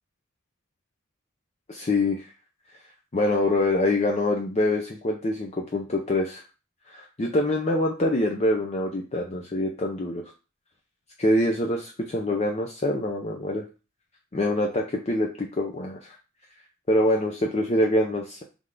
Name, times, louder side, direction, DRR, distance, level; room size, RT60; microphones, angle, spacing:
voice 1, 1.7-2.2 3.1-6.4 6.9-10.2 11.2-13.6 14.3-15.3 15.6-16.2 16.9-18.4, left 1 dB, 35° left, 1 dB, 0.5 m, -25 dB
3.5 x 3.2 x 3.7 m, 0.32 s
head